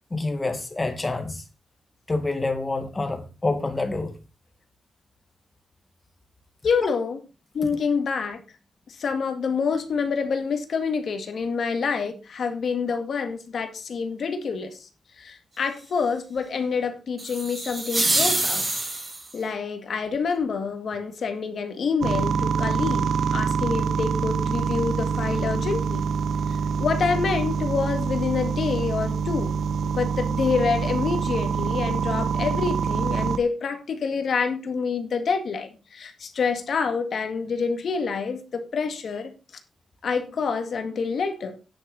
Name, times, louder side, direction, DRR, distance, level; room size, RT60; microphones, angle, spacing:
voice 1, 0.1-1.4 2.1-4.2 6.8-6.9 7.6-7.7, left 2 dB, 20° left, 2.1 m, -27 dB
voice 2, 6.6-7.2 7.5-8.4 8.9-14.9 15.2-18.7 19.3-26.0 26.5-29.6 29.8-39.3 40.0-41.5, left 5 dB, 60° left, 2.1 m, -27 dB
sound 1, 17.2-19.4, right 2 dB, 25° right, 3.7 m, -25 dB
sound 2, 22.0-33.4, right 5 dB, 80° right, 0.8 m, -25 dB
10.0 x 10.0 x 4.2 m
wide cardioid pair, 130°, 0 cm